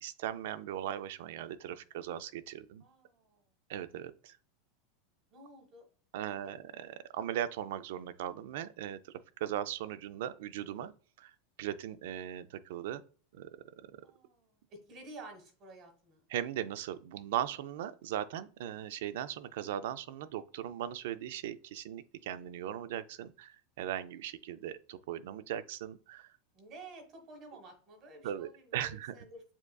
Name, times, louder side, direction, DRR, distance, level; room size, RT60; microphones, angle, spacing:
voice 1, 0.0-2.8 3.7-4.4 6.1-10.9 11.2-11.3 11.6-13.0 13.3-13.5 16.3-26.3 28.2-29.1, right 11 dB, 70° right, 0.4 m, -38 dB
voice 2, 2.8-3.4 5.3-5.8 6.4-6.6 14.0-16.2 26.5-29.4, right 2 dB, 35° right, 1.3 m, -52 dB
7.0 x 2.5 x 2.2 m
supercardioid pair, 160°, 0 cm